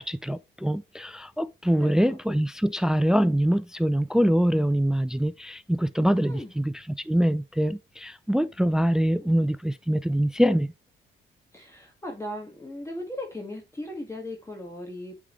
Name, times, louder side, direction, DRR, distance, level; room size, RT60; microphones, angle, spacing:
voice 1, 0.0-6.7 7.1-10.7, equal, 5° right, 0.4 m, -24 dB
voice 2, 1.8-2.2 6.3-6.5 11.5-15.2, left 1 dB, 15° left, 1.6 m, -37 dB
8.4 x 3.8 x 3.1 m
cardioid pair, 90°, 20 cm